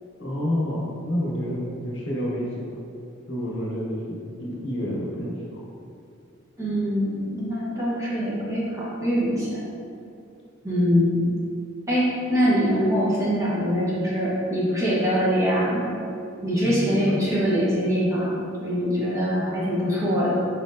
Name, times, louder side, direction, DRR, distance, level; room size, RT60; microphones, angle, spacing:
voice 1, 0.2-2.7 3.3-5.6 16.6-17.1, equal, 60° left, -4 dB, 0.9 m, -29 dB
voice 2, 6.6-9.7 10.6-11.3 11.9-15.9 16.4-20.3, equal, 15° right, -8 dB, 0.8 m, -23 dB
4.3 x 4.1 x 2.5 m, 2.4 s
head